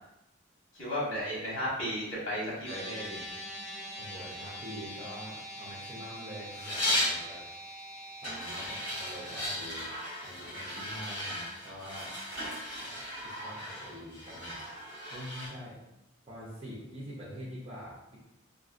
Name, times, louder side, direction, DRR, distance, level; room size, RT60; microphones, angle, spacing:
voice 1, 0.7-3.2, equal, 75° left, -6 dB, 1.4 m, -34 dB
sound 1, 2.7-9.5, equal, 35° left, 0.5 m, -43 dB
voice 2, 4.0-7.5 8.2-9.9 10.2-12.2 13.2-14.7 15.1-15.8 16.3-18.2, equal, 30° right, -6 dB, 0.5 m, -45 dB
sound 2, 6.5-7.2 8.2-15.5, left 1 dB, 60° left, 1.2 m, -36 dB
3.1 x 2.6 x 2.5 m, 0.88 s
head